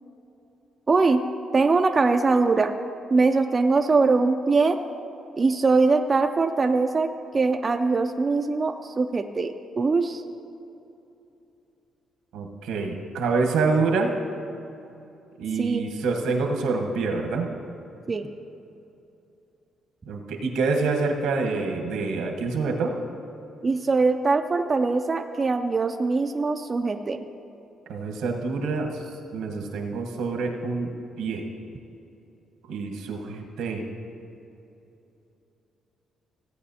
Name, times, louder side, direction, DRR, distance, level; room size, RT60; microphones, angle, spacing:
voice 1, 0.9-1.2 1.5-2.7 3.1-4.8 5.4-10.2 15.6-15.9 18.1-18.3 23.6-27.2, right 3 dB, 30° right, 6 dB, 0.4 m, -22 dB
voice 2, 12.3-14.1 15.4-17.5 20.0-22.9 27.9-29.0 29.3-30.9 31.2-31.4 32.6-33.8, right 4 dB, 90° right, 2 dB, 1.2 m, -26 dB
16.0 x 8.5 x 2.8 m, 2.8 s
cardioid pair, 90°, 0 cm